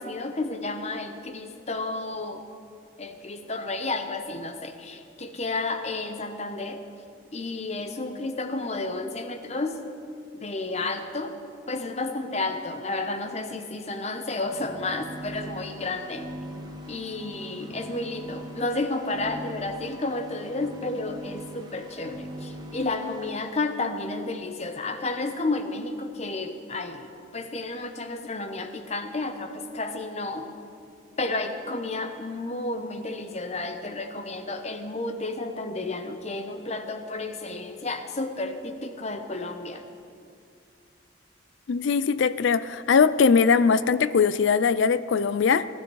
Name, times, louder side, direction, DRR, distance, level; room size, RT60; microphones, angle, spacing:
voice 1, 0.0-2.5 3.0-6.8 7.3-9.8 10.3-11.4 11.7-16.3 16.9-27.1 27.3-30.5 31.2-39.8, left 2 dB, 35° left, 8 dB, 0.9 m, -31 dB
sound 1, 14.4-23.5, right 1 dB, 20° right, 1.0 m, -41 dB
voice 2, 41.7-45.7, left 5 dB, 65° left, 16 dB, 0.4 m, -21 dB
19.5 x 12.5 x 4.7 m, 2.4 s
head